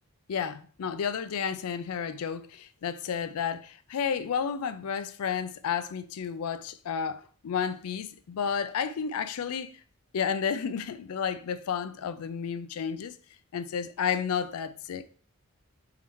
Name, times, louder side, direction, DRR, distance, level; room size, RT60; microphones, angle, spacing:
voice 1, 0.3-9.7 10.1-13.1 13.5-15.0, left 7 dB, 80° left, 0.4 m, -31 dB
3.9 x 3.0 x 4.3 m
head